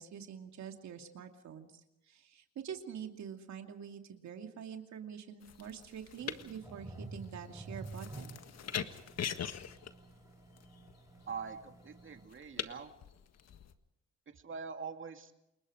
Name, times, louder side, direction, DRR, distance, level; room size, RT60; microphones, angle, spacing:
voice 1, 0.0-8.4, right 8 dB, 65° right, 4 dB, 2.6 m, -46 dB
sound 1, 5.4-13.7, left 8 dB, 60° left, 1.6 m, -43 dB
sound 2, 6.2-12.3, right 3 dB, 10° right, 3.4 m, -50 dB
voice 2, 11.3-12.9 14.3-15.3, right 5 dB, 40° right, 6 dB, 2.5 m, -44 dB
29.0 x 21.0 x 5.1 m, 0.86 s
cardioid pair, 90°, 30 cm